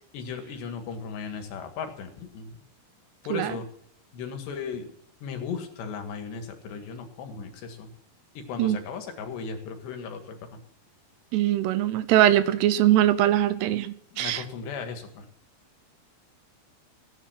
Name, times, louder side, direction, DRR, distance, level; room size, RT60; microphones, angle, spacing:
voice 1, 0.1-2.6 3.3-3.7 4.1-4.9 5.2-7.9 8.4-10.6 14.1-15.3, left 5 dB, 75° left, 4.1 m, -36 dB
voice 2, 11.3-14.4, right 12 dB, 80° right, 2.7 m, -22 dB
16.0 x 10.5 x 6.0 m
omnidirectional pair, 5.0 m